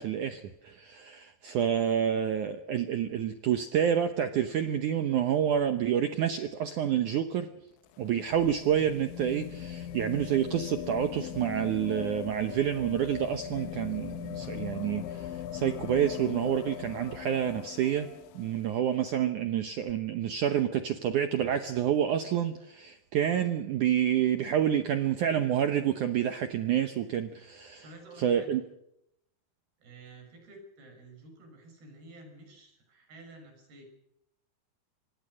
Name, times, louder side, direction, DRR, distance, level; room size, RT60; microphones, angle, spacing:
voice 1, 0.0-7.5 8.0-18.1 18.3-27.8 28.2-28.6, right 9 dB, 85° right, 9 dB, 1.7 m, -28 dB
sound 1, 7.7-18.7 19.9-20.0, left 11 dB, 85° left, 3.3 m, -40 dB
voice 2, 27.8-28.6 29.8-33.8, right 2 dB, 60° right, 4 dB, 8.1 m, -51 dB
25.5 x 20.0 x 6.4 m, 0.79 s
omnidirectional pair, 5.1 m